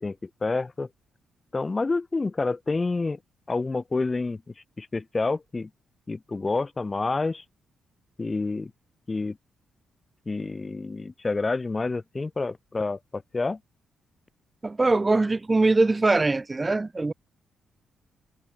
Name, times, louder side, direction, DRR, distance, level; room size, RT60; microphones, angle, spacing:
voice 1, 0.0-0.9 1.5-3.2 3.5-4.4 4.8-5.7 6.1-7.4 8.2-8.7 9.1-9.4 10.3-13.6, left 3 dB, 20° left, 1.4 m, -28 dB
voice 2, 14.6-17.1, right 3 dB, 20° right, 2.9 m, -22 dB
cardioid pair, 140°, 0 cm